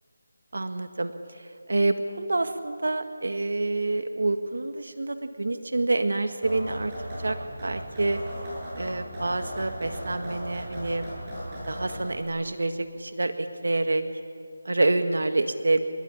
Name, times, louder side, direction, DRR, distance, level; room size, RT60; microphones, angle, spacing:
voice 1, 0.5-6.9 7.2-7.4 7.6-8.2 8.8-11.1 11.7-14.0 14.7-15.8, right 2 dB, 70° right, 8 dB, 1.8 m, -27 dB
sound 1, 6.4-12.3, equal, 15° right, 6.7 m, -37 dB
28.0 x 21.0 x 10.0 m, 2.4 s
figure-of-eight pair, 175°, 0 cm